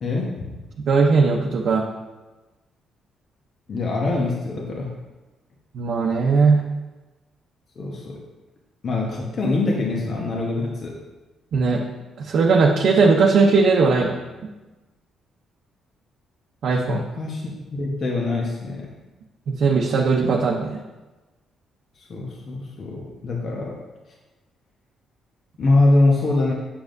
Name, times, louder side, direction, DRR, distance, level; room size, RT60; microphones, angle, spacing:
voice 1, 0.0-0.6 3.7-4.9 7.8-8.1 8.8-10.9 16.8-18.9 21.9-23.8 25.6-26.5, left 2 dB, 50° left, -2 dB, 1.1 m, -23 dB
voice 2, 0.9-1.9 5.7-6.6 11.5-11.8 12.2-14.2 16.6-17.0 19.5-20.8, right 4 dB, 65° right, -1 dB, 0.7 m, -18 dB
7.2 x 6.9 x 2.6 m, 1.2 s
cardioid pair, 90°, 0 cm